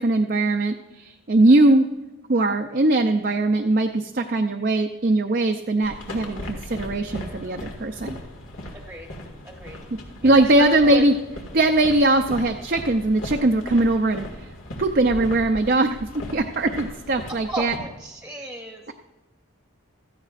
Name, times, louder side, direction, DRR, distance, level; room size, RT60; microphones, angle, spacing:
voice 1, 0.0-1.9 2.3-8.2 10.2-11.1 11.5-14.5 14.8-17.7, right 2 dB, 45° right, 4 dB, 0.5 m, -20 dB
sound 1, 5.8-17.8, left 1 dB, 75° left, 2.1 m, -37 dB
voice 2, 9.4-9.8 10.2-11.0 17.5-18.8, right 1 dB, 5° right, 1 dB, 1.0 m, -34 dB
16.0 x 14.0 x 2.5 m, 1.1 s
head